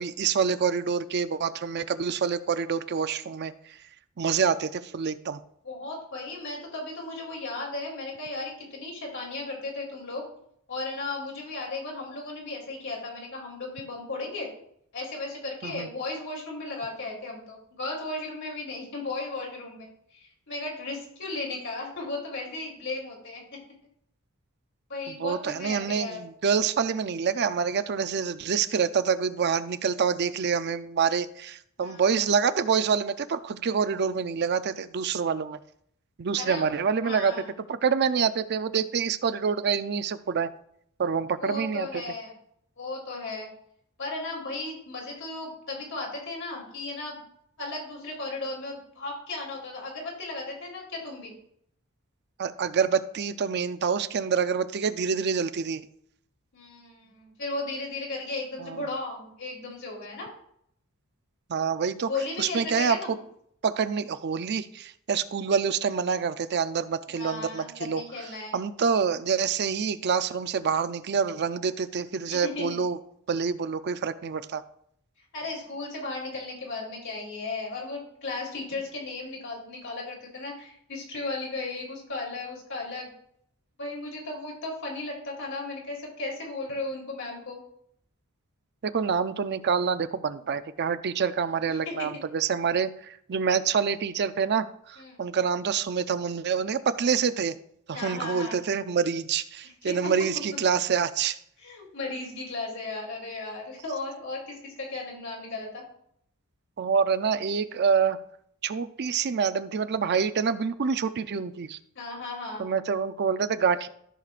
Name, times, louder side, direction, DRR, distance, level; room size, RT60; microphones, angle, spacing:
voice 1, 0.0-3.5 4.2-5.4 15.6-15.9 25.1-35.6 36.2-37.3 37.7-40.5 41.0-42.0 52.4-55.8 58.6-58.9 61.5-62.1 62.4-63.2 63.6-68.0 68.5-73.0 73.3-74.6 88.8-97.5 97.9-101.4 106.8-108.2 108.6-111.8 112.6-113.9, right 6 dB, 50° right, 12 dB, 0.4 m, -26 dB
voice 2, 5.6-10.3 10.7-14.5 14.9-23.4 24.9-26.2 31.8-32.0 36.4-37.5 41.4-42.3 42.8-43.5 44.0-47.2 47.6-51.3 56.5-60.3 62.1-63.2 67.1-68.6 72.2-72.8 75.3-83.1 83.8-87.6 91.6-92.2 95.0-95.2 97.9-98.6 99.8-100.1 101.6-105.8 111.9-112.7, left 2 dB, 60° left, -1 dB, 3.0 m, -35 dB
14.0 x 6.5 x 2.5 m, 0.69 s
head